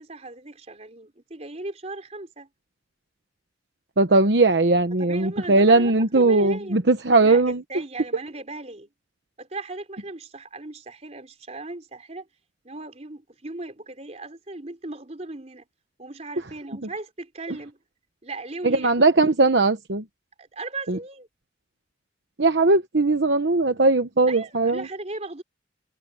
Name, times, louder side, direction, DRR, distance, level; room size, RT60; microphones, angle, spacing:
voice 1, 0.0-2.5 4.9-6.8 7.2-8.9 9.4-12.3 12.6-15.7 16.0-17.8 18.2-19.1 20.4-21.3 24.3-25.4, right 2 dB, 40° right, 3.9 m, -37 dB
voice 2, 4.0-7.6 18.6-20.0 20.9-21.0 22.4-24.8, right 3 dB, 70° right, 1.1 m, -19 dB
head